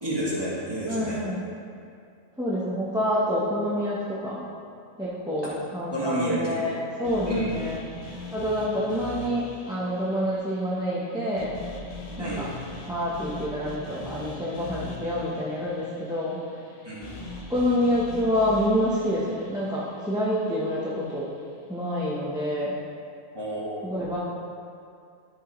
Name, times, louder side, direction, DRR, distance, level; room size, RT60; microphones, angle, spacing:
voice 1, 0.0-1.2 5.4-5.5 5.9-6.8 7.3-7.7 12.2-12.4 16.8-17.1 23.3-23.8, right 1 dB, 20° right, -7 dB, 1.8 m, -29 dB
voice 2, 0.9-1.4 2.4-4.4 5.0-7.8 8.3-11.6 12.2-12.5 12.9-16.4 17.5-21.3 21.7-22.7 23.8-24.2, equal, 5° right, -8 dB, 0.9 m, -27 dB
sound 1, 7.0-21.2, left 2 dB, 40° left, 0.7 m, -42 dB
12.0 x 5.4 x 3.1 m, 2.4 s
omnidirectional pair, 1.3 m